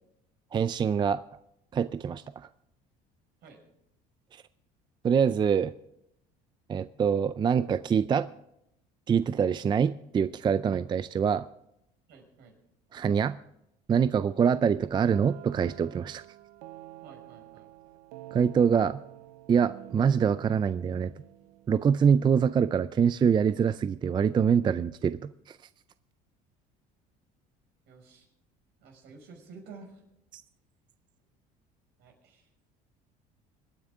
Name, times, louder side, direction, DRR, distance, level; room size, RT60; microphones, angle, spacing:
voice 1, 0.5-1.2 1.7-2.5 4.3-4.4 5.0-5.7 6.7-8.3 9.1-11.5 12.9-13.4 13.9-16.2 18.3-19.0 19.5-21.1 21.7-25.2 25.5-25.6 30.3-30.4, right 7 dB, 25° right, 0.4 m, -25 dB
voice 2, 12.1-12.6 17.0-17.7 27.9-28.3 28.8-30.0 32.0-32.5, right 4 dB, 70° right, 5.7 m, -51 dB
sound 1, 15.1-22.8, right 16 dB, 85° right, 0.7 m, -48 dB
25.5 x 9.6 x 3.6 m
supercardioid pair, 100°, 18 cm